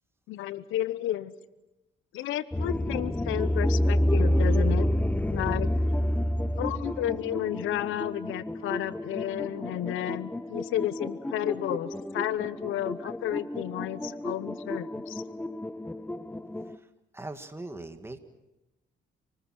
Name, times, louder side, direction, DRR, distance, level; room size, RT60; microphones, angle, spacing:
voice 1, 0.3-1.3 2.1-4.9 5.3-5.7 6.6-15.2, left 13 dB, 90° left, 16 dB, 0.9 m, -32 dB
sound 1, 2.5-16.8, left 1 dB, 10° left, 0.8 m, -29 dB
voice 2, 16.6-18.2, right 2 dB, 10° right, 7 dB, 2.1 m, -41 dB
27.5 x 20.0 x 6.0 m, 1.0 s
cardioid pair, 90°, 20 cm